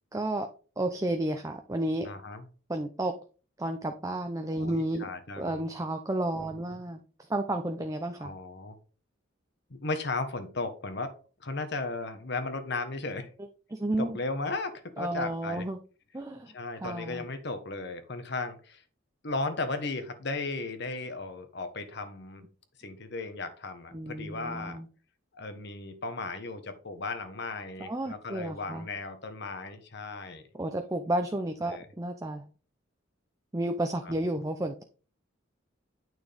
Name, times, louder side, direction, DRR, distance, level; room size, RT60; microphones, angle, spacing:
voice 1, 0.1-0.5 0.8-2.1 2.7-3.1 3.6-5.1 5.4-7.0 7.3-8.3 13.7-14.2 15.0-15.8 16.1-16.5 16.8-17.2 23.9-24.9 27.8-28.9 30.6-32.4 33.5-34.8, right 1 dB, 15° right, 6 dB, 0.6 m, -31 dB
voice 2, 2.0-2.5 4.6-5.6 6.4-6.5 8.2-8.8 9.7-11.1 11.4-13.3 14.0-15.7 16.5-18.8 19.2-22.4 22.8-24.8 25.3-30.4 31.6-31.9 34.0-34.1, left 3 dB, 60° left, 9 dB, 1.3 m, -36 dB
9.3 x 6.2 x 3.5 m, 0.37 s
head